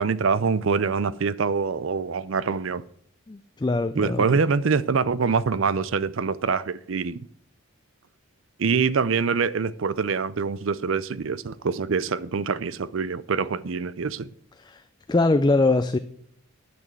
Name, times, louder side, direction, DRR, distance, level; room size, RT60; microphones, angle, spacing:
voice 1, 0.0-2.8 4.0-7.2 8.6-14.3, right 5 dB, 65° right, 0.5 m, -25 dB
voice 2, 3.3-4.4 14.6-14.8 15.1-16.0, left 2 dB, 20° left, 0.4 m, -22 dB
9.2 x 6.2 x 7.7 m
head